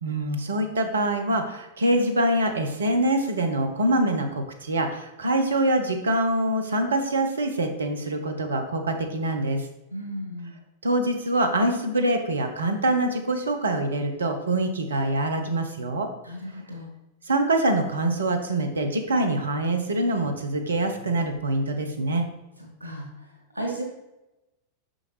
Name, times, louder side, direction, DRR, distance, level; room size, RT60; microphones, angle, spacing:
voice 1, 0.0-9.6 10.8-16.1 17.3-22.3, right 1 dB, 70° right, 5 dB, 0.9 m, -24 dB
voice 2, 9.9-10.6 16.2-16.9 22.8-23.8, right 1 dB, 85° left, -1 dB, 2.1 m, -35 dB
6.4 x 6.2 x 3.3 m, 0.95 s
figure-of-eight pair, 90°, 0 cm